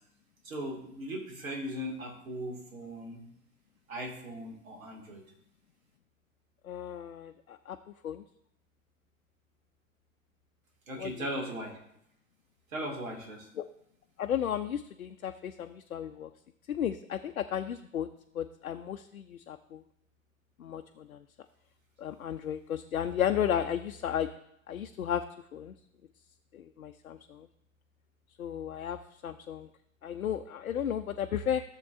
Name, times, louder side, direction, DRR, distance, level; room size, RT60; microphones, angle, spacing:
voice 1, 0.4-3.3 3.9-5.2 10.9-11.8 12.7-13.5, equal, 75° right, 0 dB, 2.2 m, -38 dB
voice 2, 6.6-7.8 8.0-8.2 11.0-11.3 13.6-13.7 14.2-16.3 16.7-18.1 18.3-19.8 20.6-21.2 22.0-24.3 24.7-25.2 25.5-25.7 26.5-27.5 28.4-29.7 30.0-31.6, left 9 dB, 85° left, 7 dB, 0.5 m, -34 dB
15.0 x 7.1 x 2.5 m, 0.74 s
figure-of-eight pair, 90°, 41 cm